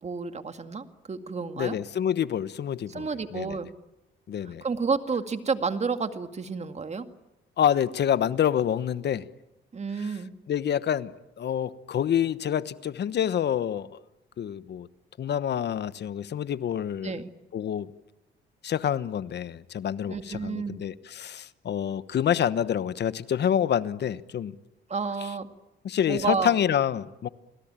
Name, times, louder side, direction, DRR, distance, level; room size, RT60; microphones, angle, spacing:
voice 1, 0.0-1.8 2.9-3.7 4.4-7.1 9.7-10.3 17.0-17.3 20.1-20.8 24.9-25.5 26.1-26.6, right 5 dB, 35° right, 2.1 m, -30 dB
voice 2, 1.6-3.6 4.3-4.6 7.6-9.2 10.5-11.1 11.4-14.0 14.4-14.9 15.2-17.1 17.5-17.9 18.6-24.5 25.8-27.3, left 9 dB, 60° left, 1.1 m, -27 dB
30.0 x 21.0 x 9.0 m
cardioid pair, 90°, 20 cm